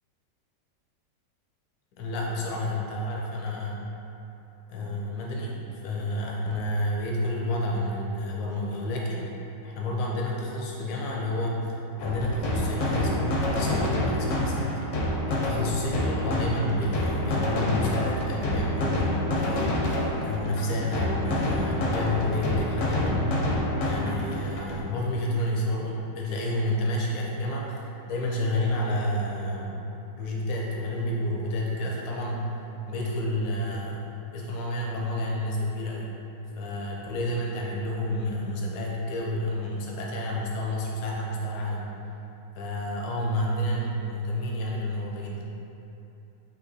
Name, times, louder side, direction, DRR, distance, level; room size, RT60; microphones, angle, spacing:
voice 1, 2.0-3.8 4.7-9.4 9.6-11.7 12.0-27.7 28.1-29.8 30.2-32.6 32.9-34.1 34.3-36.1 36.6-41.9 42.5-45.5, left 1 dB, 85° left, -2 dB, 1.4 m, -30 dB
sound 1, 12.0-24.8, left 1 dB, 65° left, 0.7 m, -28 dB
4.1 x 2.8 x 3.9 m, 2.9 s
omnidirectional pair, 2.0 m